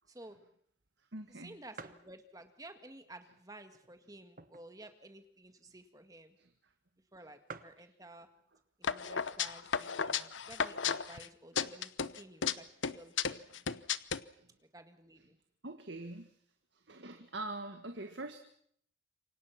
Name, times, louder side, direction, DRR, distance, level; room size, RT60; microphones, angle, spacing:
voice 1, 0.1-0.4 1.3-6.4 7.1-8.3 8.8-11.9 12.2-12.7 12.9-13.5 14.7-15.4, right 1 dB, 20° right, 8 dB, 1.8 m, -53 dB
sound 1, 0.8-0.9 1.2-1.3 1.7-2.1 2.8-2.9 3.7-4.8 5.2-5.3 5.5-5.7 6.5-6.6 6.8-6.9 7.2-7.3 7.5-7.9 8.8-9.1 9.6-9.7 9.9-10.7, right 4 dB, 45° right, 1.2 m, -51 dB
voice 2, 1.1-1.6 6.4-6.5 13.5-13.6 14.4-14.5 15.6-16.3 16.7-18.4, right 2 dB, 70° right, 6 dB, 1.8 m, -44 dB
sound 2, 8.8-11.3 11.6-12.5 12.8-14.2, left 7 dB, 80° left, 0.9 m, -33 dB
28.0 x 24.5 x 6.0 m, 0.64 s
head